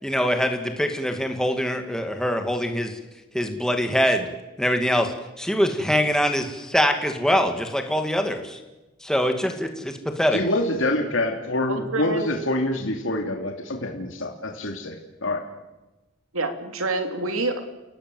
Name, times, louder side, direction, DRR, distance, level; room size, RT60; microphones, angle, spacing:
voice 1, 0.0-3.0 3.3-4.3 4.6-5.1 5.4-8.4 9.1-10.4, equal, 5° left, 5 dB, 2.3 m, -23 dB
voice 2, 10.3-15.0 15.2-15.4, left 1 dB, 65° left, 2 dB, 2.8 m, -26 dB
voice 3, 11.7-12.3 16.3-17.6, right 2 dB, 90° right, 6 dB, 3.2 m, -27 dB
30.0 x 17.5 x 7.9 m, 1.1 s
head